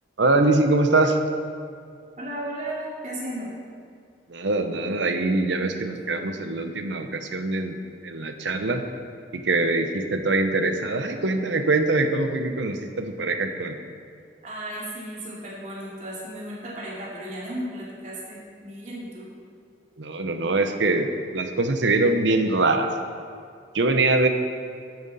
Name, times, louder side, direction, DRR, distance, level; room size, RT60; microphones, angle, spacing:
voice 1, 0.2-1.2 4.3-7.8 8.0-8.8 9.3-13.8 20.0-22.9 23.7-24.3, right 2 dB, 80° right, 7 dB, 0.9 m, -23 dB
voice 2, 2.2-3.5 14.4-19.3, right 1 dB, 40° right, -5 dB, 2.6 m, -35 dB
12.0 x 9.1 x 4.2 m, 2.3 s
head